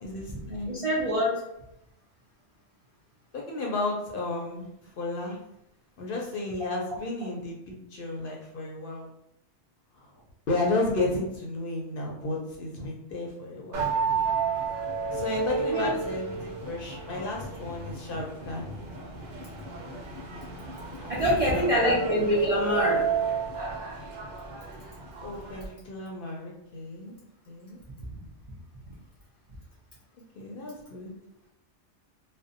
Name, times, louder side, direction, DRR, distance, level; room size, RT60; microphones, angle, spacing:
voice 1, 0.0-0.8 3.3-5.4 6.0-9.1 9.9-10.2 10.5-13.8 15.1-19.0 21.0-22.3 25.2-27.1 27.5-27.8 30.4-31.1, left 2 dB, 60° left, -2 dB, 0.6 m, -33 dB
voice 2, 0.7-1.4 15.7-15.9 21.1-23.1 28.0-28.1, equal, 55° right, -5 dB, 0.4 m, -25 dB
sound 1, 13.7-25.7, right 4 dB, 85° right, 1.0 m, -32 dB
2.6 x 2.1 x 2.4 m, 0.81 s
omnidirectional pair, 1.2 m